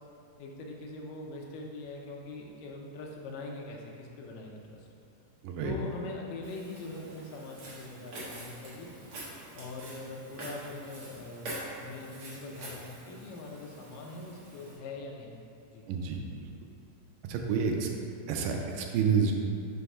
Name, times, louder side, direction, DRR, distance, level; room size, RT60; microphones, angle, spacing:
voice 1, 0.4-4.9 5.6-8.9 9.5-11.5 11.8-15.4 15.7-15.9, left 2 dB, 80° left, 0 dB, 2.3 m, -42 dB
voice 2, 5.4-5.7 15.9-16.5 17.2-17.9 18.3-19.3, right 6 dB, 80° right, 2 dB, 2.1 m, -29 dB
Walk footsteps, 6.4-14.8, right 1 dB, 55° right, 1.7 m, -45 dB
5.9 x 3.4 x 5.3 m, 2.6 s
omnidirectional pair, 3.9 m